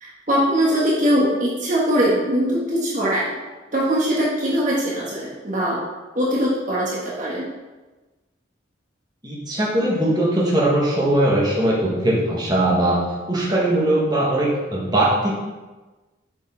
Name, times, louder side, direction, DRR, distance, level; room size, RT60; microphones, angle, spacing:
voice 1, 0.0-3.3 3.7-5.8 6.1-7.5, equal, 40° right, -5 dB, 1.2 m, -21 dB
voice 2, 9.2-15.3, right 1 dB, 20° right, -5 dB, 1.5 m, -20 dB
7.5 x 5.3 x 3.8 m, 1.2 s
head